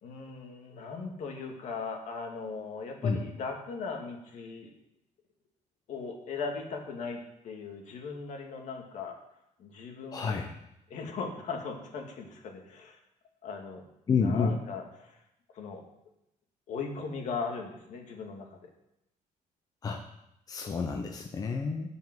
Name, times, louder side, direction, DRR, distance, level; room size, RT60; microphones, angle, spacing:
voice 1, 0.0-4.7 5.9-7.2 7.4-9.2 9.6-10.4 10.9-13.0 13.4-13.9 14.2-15.2 15.5-15.8 16.7-18.7, left 4 dB, 60° left, 2 dB, 2.0 m, -38 dB
voice 2, 10.1-10.5 14.1-14.6 19.8-20.0 20.5-21.9, left 5 dB, 25° left, 3 dB, 0.7 m, -29 dB
14.5 x 5.5 x 6.1 m, 0.83 s
cardioid pair, 175°, 14 cm